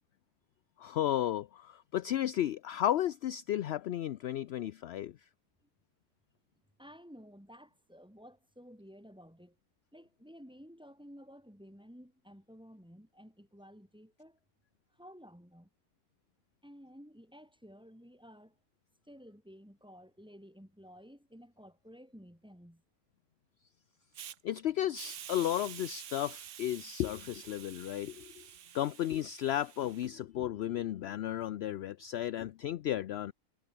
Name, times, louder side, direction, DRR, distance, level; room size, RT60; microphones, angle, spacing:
voice 1, 0.8-5.2 24.4-33.3, left 12 dB, 65° left, 0.6 m, -34 dB
voice 2, 6.8-9.5 9.9-14.4 15.0-15.7 16.6-18.5 19.1-22.8, equal, 5° right, 3.2 m, -54 dB
Hiss, 24.1-24.4 24.9-30.1, right 10 dB, 60° right, 1.1 m, -48 dB
omnidirectional pair, 1.5 m